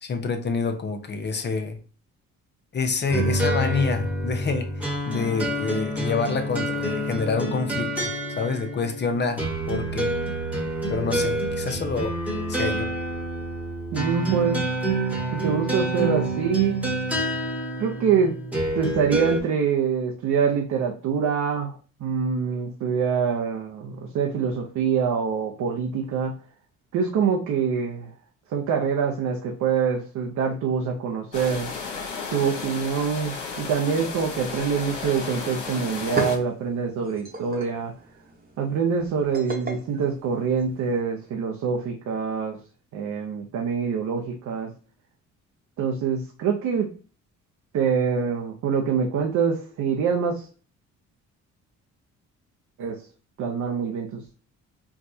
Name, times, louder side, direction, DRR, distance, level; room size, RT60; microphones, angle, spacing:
voice 1, 0.0-1.8 2.7-10.1 10.9-12.2 12.5-12.9, left 4 dB, 35° left, 0.7 m, -27 dB
sound 1, 3.1-19.4, right 1 dB, 5° right, 1.3 m, -27 dB
voice 2, 13.9-14.6 15.3-16.8 17.8-18.4 18.7-26.3 26.9-28.1 28.5-31.7 32.3-37.9 38.6-42.6 42.9-44.7 45.8-46.9 47.7-50.5 52.8-53.0 53.4-54.2, right 6 dB, 70° right, 0.7 m, -25 dB
sound 2, 31.3-36.4, left 4 dB, 80° left, 1.0 m, -34 dB
sound 3, 35.9-41.0, right 3 dB, 30° right, 1.0 m, -35 dB
4.6 x 2.3 x 2.7 m
cardioid pair, 90°, 30 cm